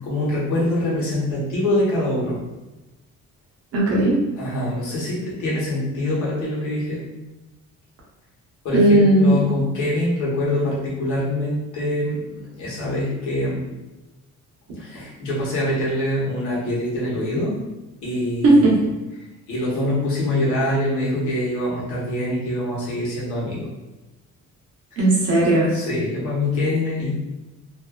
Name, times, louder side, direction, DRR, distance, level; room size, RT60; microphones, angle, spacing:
voice 1, 0.0-2.4 4.4-7.0 8.6-13.6 14.8-17.6 18.0-18.8 19.5-23.7 25.7-27.1, left 1 dB, 80° left, -7 dB, 1.1 m, -24 dB
voice 2, 3.7-4.2 8.7-9.4 18.4-18.8 25.0-25.7, right 1 dB, 55° right, -4 dB, 0.7 m, -15 dB
2.5 x 2.2 x 2.2 m, 1.1 s
cardioid pair, 175°, 29 cm